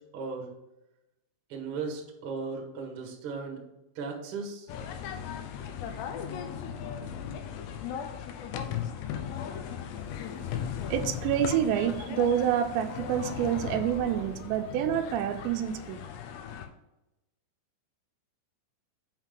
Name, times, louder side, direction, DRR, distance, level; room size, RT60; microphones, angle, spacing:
voice 1, 0.1-0.5 1.5-3.6 3.9-4.7, right 4 dB, 60° right, 0 dB, 1.4 m, -36 dB
sound 1, 4.7-16.7, left 8 dB, 85° left, 2.9 m, -37 dB
voice 2, 10.9-16.1, right 10 dB, 85° right, 7 dB, 2.8 m, -28 dB
7.3 x 5.7 x 3.7 m, 0.94 s
omnidirectional pair, 5.1 m